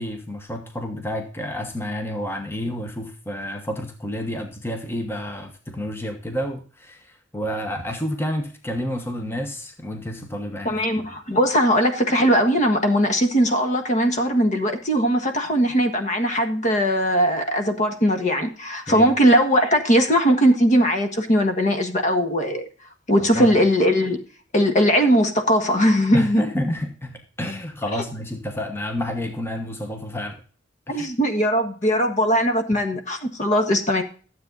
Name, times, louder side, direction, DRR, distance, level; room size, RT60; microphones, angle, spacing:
voice 1, 0.0-11.1 18.9-19.1 23.2-23.5 26.1-30.4 30.9-31.1, left 1 dB, 10° left, 1.1 m, -30 dB
voice 2, 10.6-22.7 23.1-24.2 24.5-26.4 30.9-34.0, equal, 40° left, 1.5 m, -19 dB
13.0 x 7.8 x 3.9 m
head